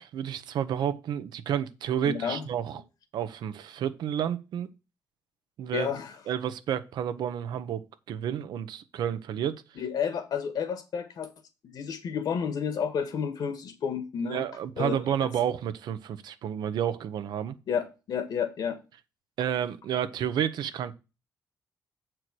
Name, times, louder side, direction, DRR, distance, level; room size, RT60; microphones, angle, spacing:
voice 1, 0.0-2.8 3.1-4.7 5.6-5.9 6.3-9.6 14.3-17.6 19.4-20.9, right 9 dB, 85° right, 0.9 m, -30 dB
voice 2, 2.1-2.4 5.7-6.2 9.8-11.3 11.6-14.5 14.8-15.3 17.7-18.8, left 7 dB, 70° left, 1.8 m, -31 dB
8.0 x 4.6 x 6.1 m
cardioid pair, 130°, 7 cm